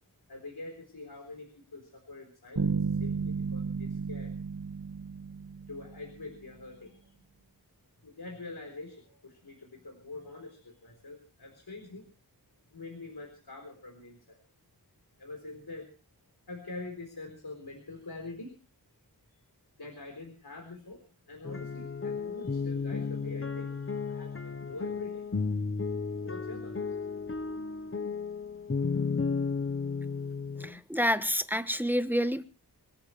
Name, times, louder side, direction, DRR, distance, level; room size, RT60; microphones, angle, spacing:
voice 1, 0.3-4.3 5.7-7.1 8.0-12.0 12.7-14.4 15.2-15.9 16.5-18.6 19.3-19.4 19.8-25.2 26.2-26.8 27.3-27.4, left 2 dB, 85° left, 2 dB, 4.1 m, -45 dB
sound 1, 2.6-6.3, right 5 dB, 75° right, 1.9 m, -33 dB
sound 2, 21.4-30.8, left 5 dB, 35° left, 0.9 m, -33 dB
voice 2, 30.6-32.4, equal, 5° right, 11 dB, 1.0 m, -28 dB
26.0 x 14.0 x 3.2 m, 0.35 s
wide cardioid pair, 65°, 37 cm